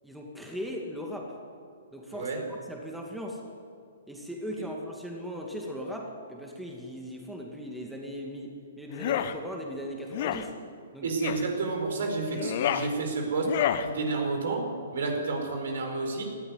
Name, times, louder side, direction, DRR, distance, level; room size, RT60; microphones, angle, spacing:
voice 1, 0.0-1.3 1.9-2.3 2.7-3.4 4.1-10.5 10.9-11.1, equal, ahead, 0 dB, 2.4 m, -38 dB
voice 2, 2.1-2.4 4.6-4.7 11.0-13.5 13.8-16.2, right 3 dB, 60° right, 3 dB, 4.7 m, -30 dB
sound 1, 8.9-9.3 10.1-10.4 11.2-11.5 12.3-12.9 13.4-13.9, left 10 dB, 45° left, 1.1 m, -29 dB
19.0 x 14.5 x 9.5 m, 2.3 s
figure-of-eight pair, 120°, 0 cm